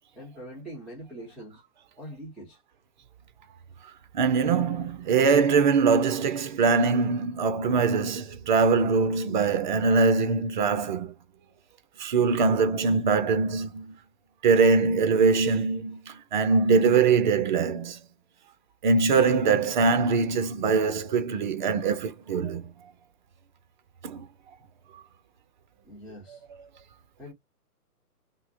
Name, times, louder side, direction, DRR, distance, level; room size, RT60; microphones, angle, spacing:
voice 1, 0.1-1.6 2.0-2.6 25.8-26.4 27.2-27.3, equal, ahead, 0.9 m, -43 dB
voice 2, 4.1-11.1 12.0-13.9 14.4-18.0 18.8-22.7 24.0-24.3 24.9-25.0 26.3-26.4, right 4 dB, 30° right, 0.6 m, -23 dB
5.6 x 2.2 x 2.6 m
hypercardioid pair, 140°, 47 cm